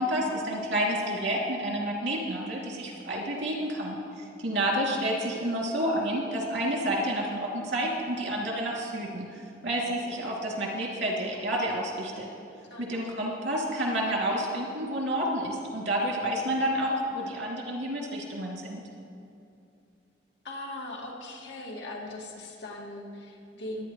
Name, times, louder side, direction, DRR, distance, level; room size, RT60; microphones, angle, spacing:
voice 1, 0.0-9.3 9.6-12.3 12.8-18.8, right 1 dB, 85° right, -2 dB, 2.7 m, -29 dB
voice 2, 12.7-13.1 20.4-23.9, left 1 dB, 85° left, -1 dB, 2.1 m, -40 dB
23.5 x 9.9 x 3.2 m, 2.6 s
head